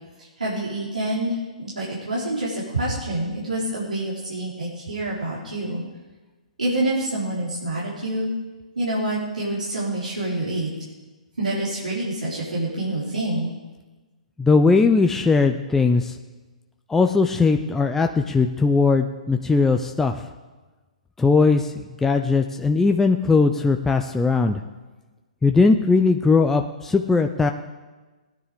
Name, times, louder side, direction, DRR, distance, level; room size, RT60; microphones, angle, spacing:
voice 1, 0.2-5.8 6.6-8.3 8.8-10.7 11.4-13.5, right 1 dB, 85° right, -7 dB, 4.0 m, -27 dB
voice 2, 14.4-16.1 16.9-20.2 21.2-21.7 22.0-24.6 25.4-27.5, left 4 dB, 10° left, 5 dB, 0.6 m, -19 dB
18.0 x 9.9 x 5.0 m, 1.2 s
figure-of-eight pair, 125°, 4 cm